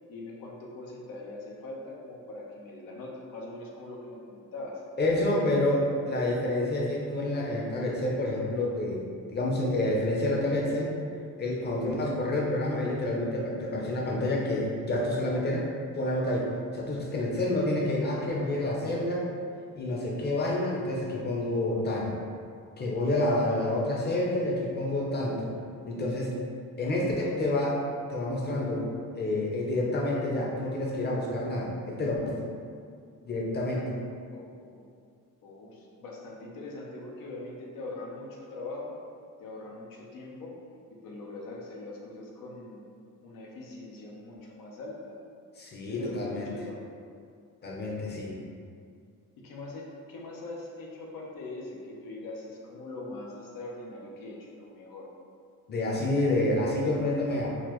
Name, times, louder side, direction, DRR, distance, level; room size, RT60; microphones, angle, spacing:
voice 1, 0.1-4.8 5.3-5.9 34.3-34.8 35.4-38.9 39.4-40.6 41.0-42.8 43.2-45.2 45.9-46.9 49.4-55.1, left 2 dB, 85° left, -2 dB, 0.8 m, -42 dB
voice 2, 5.0-5.8 6.1-10.9 11.4-15.7 15.9-19.3 19.8-22.1 22.8-25.5 25.9-26.3 26.8-27.8 28.1-28.9 29.1-32.5 33.2-33.9 45.6-46.5 47.6-48.4 55.7-57.5, left 1 dB, 30° left, -2 dB, 0.6 m, -28 dB
4.0 x 2.5 x 3.0 m, 2.3 s
cardioid pair, 130°, 33 cm